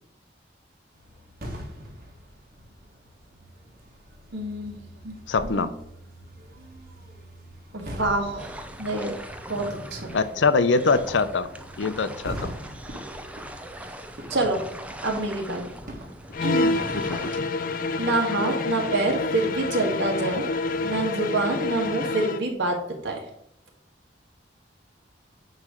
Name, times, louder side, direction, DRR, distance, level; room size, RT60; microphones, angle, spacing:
sound 1, 0.9-17.0, equal, 55° right, 1.5 m, -43 dB
voice 1, 4.3-4.8 5.0-5.1 5.4-5.7 7.7-9.2 9.5-10.1 14.3-14.6 15.0-15.8 16.4-16.8 18.0-20.5 20.8-23.2, right 2 dB, 80° right, 0 dB, 1.8 m, -27 dB
voice 2, 5.3-5.7 10.1-11.5 11.8-12.5 16.9-17.5, left 4 dB, 85° left, 11 dB, 0.6 m, -23 dB
sound 2, 8.4-17.4, right 1 dB, 5° right, 0.6 m, -40 dB
sound 3, 16.3-22.5, left 3 dB, 50° left, 0.5 m, -28 dB
9.4 x 3.2 x 6.2 m, 0.74 s
head